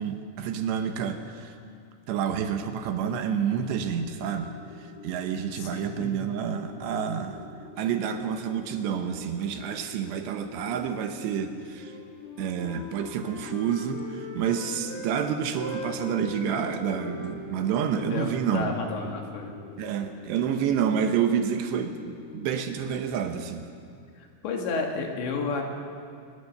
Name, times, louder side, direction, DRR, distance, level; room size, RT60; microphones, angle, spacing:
voice 1, 0.0-1.5 2.1-7.4 7.8-11.9 12.4-18.7 19.0-19.1 19.8-23.6, right 8 dB, 75° right, 7 dB, 3.1 m, -29 dB
sound 1, 3.9-23.1, left 5 dB, 90° left, 4.1 m, -47 dB
voice 2, 5.6-6.1 18.1-19.6 24.2-25.6, left 4 dB, 70° left, 2 dB, 4.4 m, -31 dB
Wind instrument woodwind instrument, 11.7-15.1 15.4-19.3, left 3 dB, 50° left, 3.7 m, -41 dB
23.5 x 20.5 x 6.7 m, 2.4 s
omnidirectional pair, 5.4 m